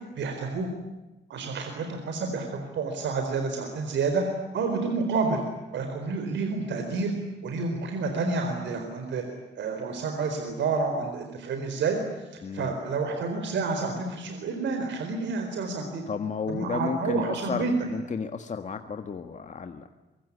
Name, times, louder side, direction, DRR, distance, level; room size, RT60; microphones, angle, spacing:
voice 1, 0.2-0.7 1.3-5.4 5.7-7.1 7.4-9.2 9.6-12.0 12.3-16.0 16.5-17.7, right 4 dB, 80° right, 5 dB, 4.4 m, -29 dB
voice 2, 12.4-12.7 16.1-19.9, left 5 dB, 40° left, 7 dB, 1.7 m, -33 dB
25.0 x 24.0 x 9.9 m, 1.1 s
cardioid pair, 115°, 19 cm